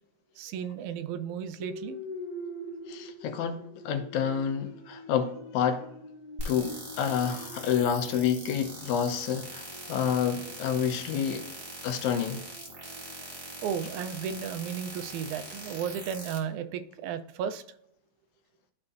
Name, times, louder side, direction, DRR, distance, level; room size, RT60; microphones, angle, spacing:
voice 1, 0.4-2.0 13.6-17.6, right 8 dB, 85° right, 2.0 m, -34 dB
sound 1, 1.6-15.8, equal, 25° left, 1.1 m, -46 dB
voice 2, 2.9-5.8 6.5-11.4 11.8-12.4, left 8 dB, 80° left, 2.2 m, -29 dB
sound 2, 6.4-16.4, right 1 dB, 35° right, 0.8 m, -42 dB
12.0 x 4.3 x 2.5 m
omnidirectional pair, 3.4 m